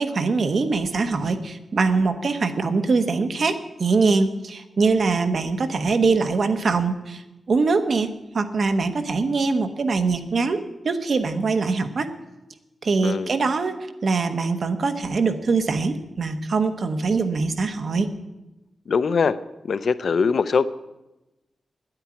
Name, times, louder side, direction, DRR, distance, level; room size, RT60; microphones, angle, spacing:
voice 1, 0.0-7.2 7.5-12.1 12.8-18.1, right 4 dB, 55° right, 8 dB, 1.1 m, -23 dB
voice 2, 18.9-19.4 19.7-20.7, left 5 dB, 60° left, 14 dB, 0.6 m, -21 dB
10.5 x 8.9 x 9.7 m, 0.98 s
wide cardioid pair, 145°, 0 cm